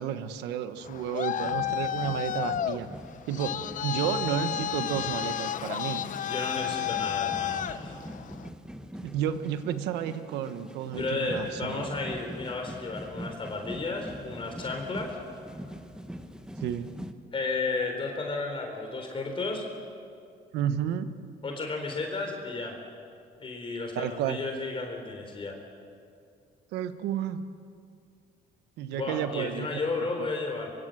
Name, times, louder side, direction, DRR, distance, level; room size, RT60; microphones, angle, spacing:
voice 1, 0.0-2.9 3.3-6.0 9.0-11.9 16.6-16.9 20.5-21.1 23.9-24.4 26.7-27.4 28.8-29.7 30.2-30.3, right 9 dB, 90° right, 10 dB, 1.3 m, -31 dB
Traffic noise roadway noise, 0.8-8.5, left 10 dB, 50° left, 0.9 m, -32 dB
sound 1, 1.4-17.1, equal, 5° right, 1.4 m, -43 dB
voice 2, 6.2-8.0 10.9-15.2 17.3-19.6 21.4-22.8 23.4-25.6 28.9-30.7, left 3 dB, 30° left, 2 dB, 3.8 m, -33 dB
25.0 x 24.0 x 7.8 m, 2.4 s
cardioid pair, 110°, 17 cm